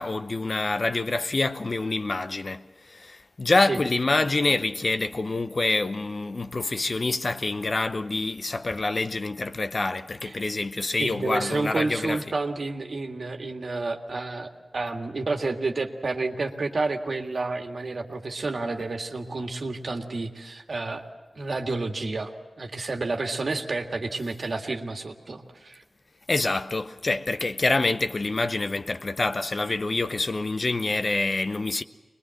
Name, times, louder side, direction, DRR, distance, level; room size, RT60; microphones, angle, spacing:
voice 1, 0.0-12.2 26.3-31.8, left 2 dB, 45° left, 0.8 m, -26 dB
voice 2, 11.0-21.1 21.4-22.3 22.6-25.8, right 3 dB, 65° right, 1.9 m, -30 dB
22.5 x 21.0 x 7.7 m
wide cardioid pair, 65°, 0 cm